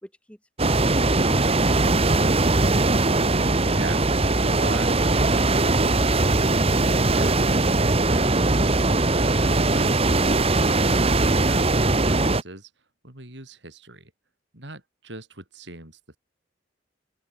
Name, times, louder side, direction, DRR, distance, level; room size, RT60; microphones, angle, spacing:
voice 1, 0.0-2.6, equal, 5° left, 4.8 m, -44 dB
sound 1, 0.6-12.4, right 2 dB, 35° right, 1.6 m, -20 dB
voice 2, 3.7-4.1 4.3-8.3 9.1-12.7 13.0-14.1 14.5-16.2, right 2 dB, 70° right, 7.2 m, -41 dB
open air
head